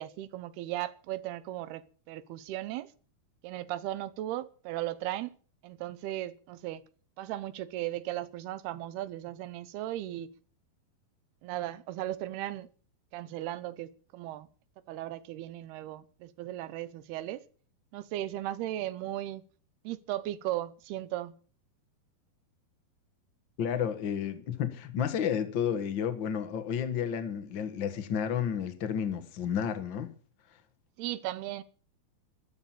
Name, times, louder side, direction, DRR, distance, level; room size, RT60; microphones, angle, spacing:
voice 1, 0.0-2.9 3.4-5.4 5.6-6.8 7.2-10.3 11.4-12.7 13.1-14.5 14.9-17.4 17.9-19.4 19.8-21.3 31.0-31.6, right 14 dB, 85° right, 2.9 m, -36 dB
voice 2, 23.6-30.1, left 8 dB, 85° left, 1.0 m, -31 dB
13.0 x 13.0 x 7.4 m
omnidirectional pair, 4.5 m